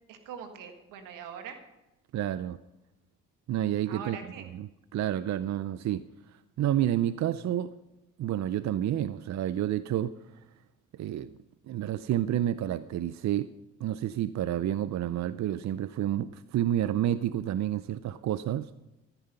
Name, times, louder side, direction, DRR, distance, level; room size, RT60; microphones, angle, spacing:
voice 1, 0.1-1.6 3.9-4.5, right 7 dB, 90° right, 6 dB, 1.6 m, -42 dB
voice 2, 2.1-2.6 3.5-4.2 4.5-7.7 8.2-10.1 10.9-11.3 11.7-13.5 13.8-18.7, right 12 dB, 60° right, 15 dB, 0.5 m, -29 dB
14.0 x 10.0 x 5.5 m, 0.96 s
supercardioid pair, 65°, 31 cm